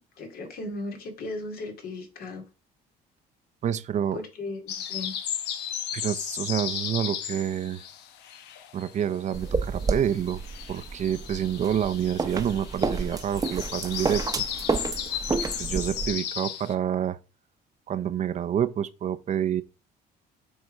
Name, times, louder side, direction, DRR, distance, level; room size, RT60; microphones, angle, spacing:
voice 1, 0.0-2.5 4.1-5.1, left 2 dB, 60° left, 2.5 m, -36 dB
voice 2, 3.6-4.2 5.9-7.8 8.7-10.4 10.7-14.5 14.9-15.0 15.4-17.2 17.9-19.6, right 9 dB, 45° right, 0.6 m, -28 dB
sound 1, 4.7-9.0 9.3-16.7, left 9 dB, 85° left, 1.1 m, -35 dB
sound 2, 9.3-16.1, right 4 dB, 20° right, 0.9 m, -30 dB
7.8 x 3.7 x 5.5 m
cardioid pair, 110°, 17 cm